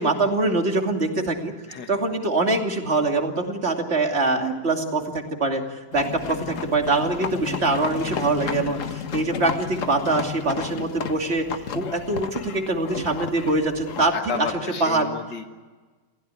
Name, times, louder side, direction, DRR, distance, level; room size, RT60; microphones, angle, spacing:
voice 1, 0.0-1.5 1.9-14.5 14.8-15.1, right 2 dB, 40° right, 3 dB, 2.9 m, -24 dB
voice 2, 1.7-2.0 8.6-8.9 14.1-15.4, left 6 dB, 90° left, 5 dB, 2.2 m, -32 dB
sound 1, 5.9-14.1, left 7 dB, 55° left, 1.4 m, -32 dB
28.5 x 16.5 x 9.7 m, 1.3 s
omnidirectional pair, 1.8 m